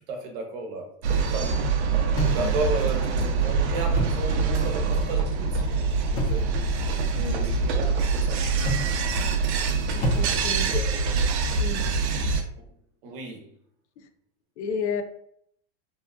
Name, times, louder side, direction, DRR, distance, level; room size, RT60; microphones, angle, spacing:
voice 1, 0.0-1.7 2.3-6.5 7.2-8.5 10.5-11.3 13.0-13.5, right 2 dB, 50° right, 0.8 m, -34 dB
sound 1, 1.0-12.4, right 4 dB, 75° right, 0.6 m, -25 dB
sound 2, 2.2-3.0 3.8-4.5 6.1-6.6 8.6-9.2 10.0-10.7, equal, 55° left, 0.9 m, -30 dB
voice 2, 9.9-10.8 11.5-11.8 14.0-14.1 14.6-15.0, left 6 dB, 80° left, 0.5 m, -32 dB
2.8 x 2.3 x 2.2 m
supercardioid pair, 150°, 34 cm